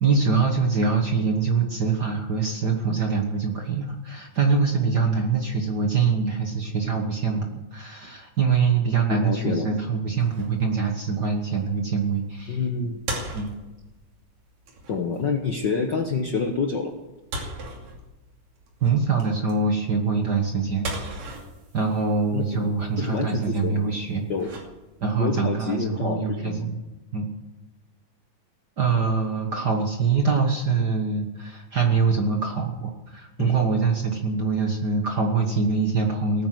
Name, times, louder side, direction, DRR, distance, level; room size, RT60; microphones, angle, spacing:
voice 1, 0.0-12.6 13.3-13.5 18.8-20.9 21.7-24.3 25.0-26.8 27.1-27.2 28.8-36.5, right 5 dB, 45° right, 2 dB, 1.4 m, -24 dB
voice 2, 9.1-9.7 12.5-13.0 14.9-16.9 22.3-22.6 23.0-23.8 24.3-24.5 25.2-26.7 33.4-33.5, left 5 dB, 55° left, 3 dB, 1.2 m, -27 dB
sound 1, 10.1-25.2, right 1 dB, 65° right, 4.0 m, -40 dB
18.5 x 9.5 x 7.8 m, 1.1 s
omnidirectional pair, 3.5 m